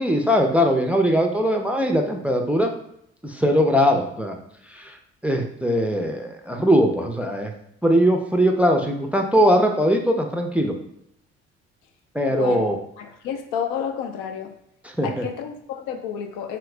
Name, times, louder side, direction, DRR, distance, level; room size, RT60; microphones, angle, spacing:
voice 1, 0.0-2.7 3.2-4.4 4.6-7.5 7.8-10.8 12.1-12.8 14.8-15.3, equal, 5° right, 2 dB, 0.4 m, -20 dB
voice 2, 12.3-12.6 13.0-14.5 15.0-16.6, left 8 dB, 70° left, 6 dB, 0.5 m, -30 dB
2.8 x 2.4 x 3.2 m, 0.74 s
hypercardioid pair, 45°, 33 cm